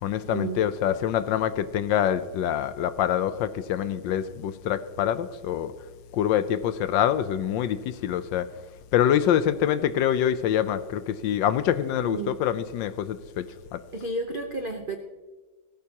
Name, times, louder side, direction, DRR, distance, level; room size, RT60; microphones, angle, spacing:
voice 1, 0.0-5.7 6.1-8.5 8.9-13.5 13.7-13.8, left 10 dB, 75° left, 13 dB, 1.2 m, -25 dB
voice 2, 12.0-12.4 13.9-15.0, right 2 dB, 80° right, 5 dB, 0.4 m, -31 dB
18.0 x 14.0 x 2.9 m, 1.3 s
omnidirectional pair, 2.2 m